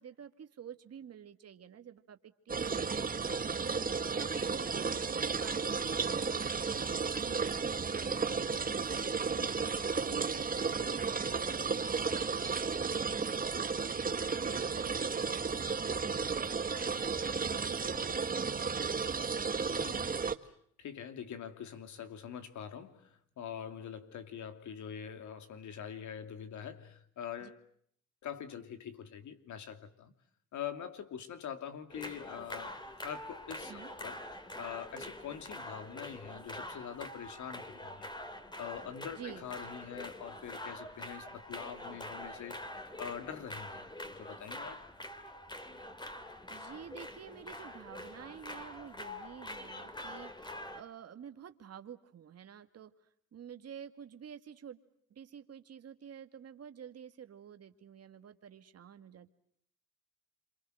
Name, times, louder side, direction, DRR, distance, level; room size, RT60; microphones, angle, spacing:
voice 1, 0.0-3.6 4.1-14.1 14.4-17.1 17.4-19.1 27.4-27.5 33.7-33.9 39.1-39.4 46.5-52.9 53.3-54.8 55.1-59.3, right 8 dB, 55° right, 2.2 m, -50 dB
sound 1, 2.5-20.3, right 5 dB, 30° right, 1.6 m, -33 dB
voice 2, 19.7-20.2 20.4-27.6 28.2-30.1 30.5-34.2 34.6-38.1 38.6-42.7 43.0-43.8 44.1-44.8, left 8 dB, 70° left, 2.9 m, -44 dB
sound 2, 31.9-50.8, left 1 dB, 15° left, 3.2 m, -45 dB
28.5 x 26.5 x 7.9 m
cardioid pair, 90°, 30 cm